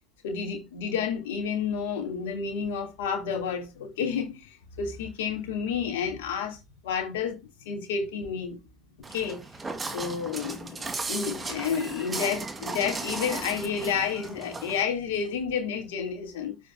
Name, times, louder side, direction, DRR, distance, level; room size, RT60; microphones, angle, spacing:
voice 1, 0.2-7.4 7.6-8.6 9.1-9.4 9.9-10.8 11.1-16.6, left 6 dB, 70° left, 3.0 m, -30 dB
Walk footsteps, 9.0-14.8, right 3 dB, 20° right, 2.0 m, -36 dB
14.0 x 4.9 x 2.7 m
hypercardioid pair, 75°, 0 cm